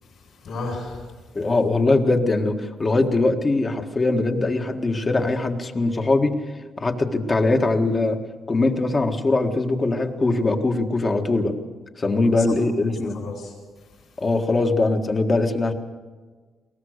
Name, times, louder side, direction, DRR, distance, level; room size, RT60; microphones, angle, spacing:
voice 1, 0.0-1.1 12.2-12.6 13.0-14.1, left 3 dB, 60° left, -4 dB, 6.7 m, -35 dB
voice 2, 1.3-6.4 6.8-8.2 8.5-11.5 12.0-13.2 14.2-15.7, left 2 dB, 30° left, 4 dB, 1.7 m, -21 dB
21.5 x 18.5 x 6.6 m, 1.4 s
cardioid pair, 90°, 0 cm